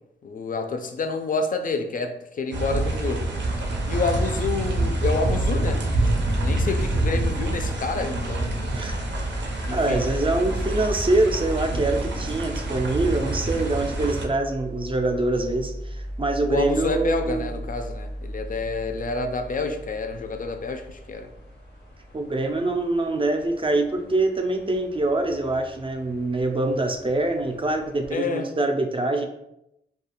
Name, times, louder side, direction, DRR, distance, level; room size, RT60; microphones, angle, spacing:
voice 1, 0.2-3.3 3.9-5.8 6.3-8.6 9.6-10.0 16.5-21.3 28.1-28.5, left 4 dB, 50° left, 6 dB, 0.4 m, -28 dB
sound 1, 2.5-14.3, right 2 dB, 80° right, 0.5 m, -26 dB
sound 2, 8.2-28.1, equal, 90° left, 0.9 m, -37 dB
voice 2, 9.7-17.6 22.1-29.2, right 2 dB, 30° right, 4 dB, 0.4 m, -24 dB
2.4 x 2.3 x 2.9 m, 0.83 s
cardioid pair, 60°, 18 cm